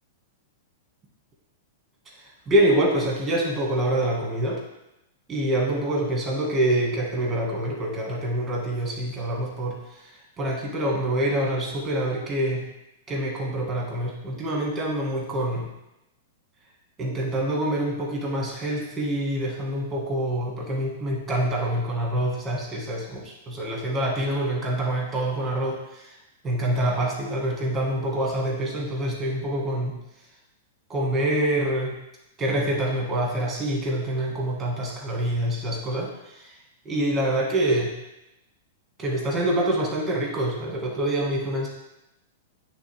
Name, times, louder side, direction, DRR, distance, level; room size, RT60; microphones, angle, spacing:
voice 1, 2.2-4.6 5.3-12.6 13.1-15.7 17.0-26.0 26.4-29.9 30.9-31.9 32.4-36.5 36.9-37.9 39.0-41.7, right 1 dB, 10° right, -2 dB, 1.8 m, -26 dB
9.0 x 3.5 x 3.5 m, 0.89 s
supercardioid pair, 150°, 0 cm